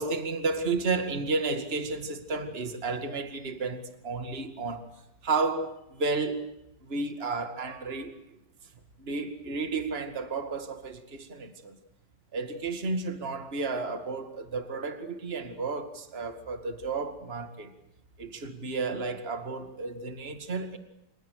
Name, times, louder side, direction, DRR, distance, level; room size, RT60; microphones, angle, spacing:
voice 1, 0.0-4.8 5.2-6.5 6.8-8.4 9.0-11.8 12.3-17.7 18.2-20.8, right 3 dB, 30° right, 2.3 m, -32 dB
29.5 x 28.5 x 6.7 m
omnidirectional pair, 2.4 m